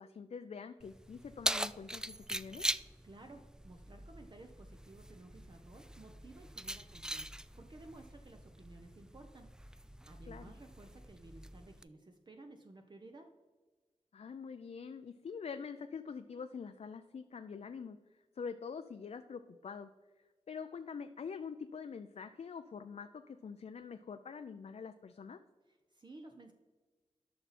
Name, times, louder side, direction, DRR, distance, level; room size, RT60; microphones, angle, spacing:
voice 1, 0.0-2.7 10.3-10.5 14.1-18.0 18.4-19.9 20.5-25.4, left 6 dB, 65° left, 8 dB, 0.5 m, -45 dB
Keys jangling, 0.8-11.8, right 1 dB, 5° right, 0.4 m, -42 dB
voice 2, 2.8-13.3 25.7-26.5, right 2 dB, 40° right, 4 dB, 0.8 m, -55 dB
12.5 x 5.8 x 4.2 m, 1.3 s
wide cardioid pair, 80°, 12 cm